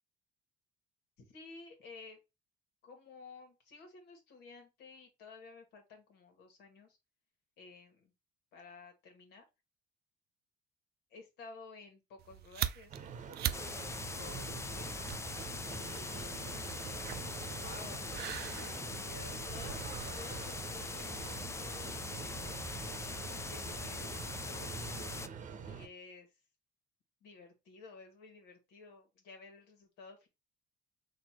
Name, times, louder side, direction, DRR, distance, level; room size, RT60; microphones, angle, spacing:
voice 1, 1.3-2.2 2.8-7.0 7.6-8.1 8.5-9.4 11.1-13.8 14.2-15.0 15.7-16.6 17.6-19.9 20.2-22.6 23.3-25.2 25.6-26.3 27.2-30.3, left 4 dB, 80° left, 4 dB, 1.7 m, -54 dB
sound 1, 12.2-21.3, right 12 dB, 70° right, 0.5 m, -44 dB
sound 2, 12.9-25.9, right 6 dB, 45° right, 0.8 m, -45 dB
sound 3, 13.5-25.3, left 4 dB, 15° left, 0.4 m, -42 dB
4.4 x 2.8 x 4.3 m, 0.24 s
cardioid pair, 110°, 17 cm